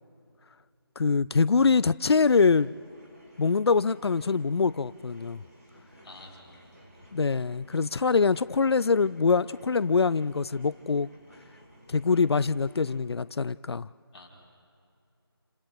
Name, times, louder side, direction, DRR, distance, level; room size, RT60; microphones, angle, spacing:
voice 1, 1.0-2.7 3.4-5.4 7.1-11.1 11.9-13.9, left 5 dB, 80° left, 0.4 m, -24 dB
sound 1, 2.0-13.0, equal, 40° right, 3.7 m, -55 dB
voice 2, 6.0-7.0 14.1-14.3, left 2 dB, 5° left, 3.9 m, -50 dB
30.0 x 29.0 x 3.0 m
figure-of-eight pair, 180°, 13 cm